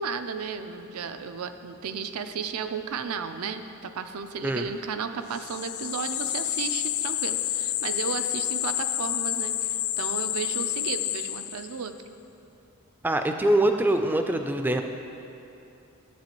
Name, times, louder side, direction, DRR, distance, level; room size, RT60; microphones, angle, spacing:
voice 1, 0.0-12.0, right 5 dB, 85° right, 9 dB, 0.5 m, -34 dB
sound 1, 5.3-11.9, left 13 dB, 70° left, 0.3 m, -29 dB
voice 2, 13.0-14.8, right 1 dB, 10° right, 6 dB, 0.3 m, -23 dB
11.5 x 7.7 x 3.0 m, 2.9 s
head